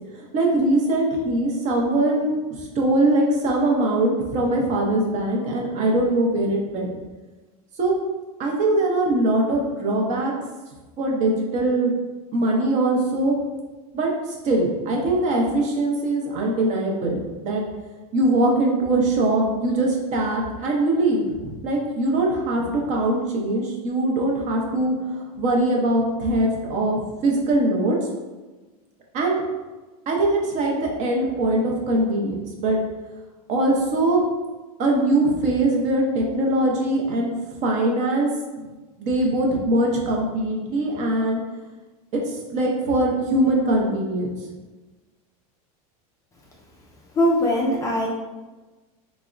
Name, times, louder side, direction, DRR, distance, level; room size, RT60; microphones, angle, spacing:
voice 1, 0.1-2.3 2.6-7.0 7.8-7.9 8.4-10.3 11.0-11.9 12.3-13.3 13.9-17.6 18.1-28.0 29.1-29.4 30.1-32.8 33.5-34.2 34.8-37.3 37.6-38.3 38.6-38.7 39.0-41.4 42.1-44.3, right 2 dB, 40° right, -1 dB, 0.7 m, -22 dB
voice 2, 47.2-48.1, equal, 15° left, -3 dB, 0.3 m, -20 dB
3.4 x 2.1 x 2.5 m, 1.2 s
supercardioid pair, 130°, 19 cm